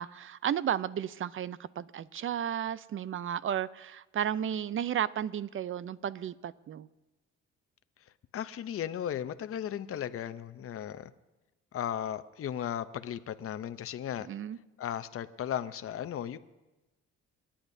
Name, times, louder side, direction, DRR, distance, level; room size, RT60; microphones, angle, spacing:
voice 1, 0.0-6.9 14.2-14.6, right 9 dB, 45° right, 0.5 m, -33 dB
voice 2, 8.3-11.1 11.7-14.3 14.8-16.4, left 10 dB, 50° left, 0.6 m, -36 dB
28.5 x 10.0 x 2.7 m
cardioid pair, 90°, 30 cm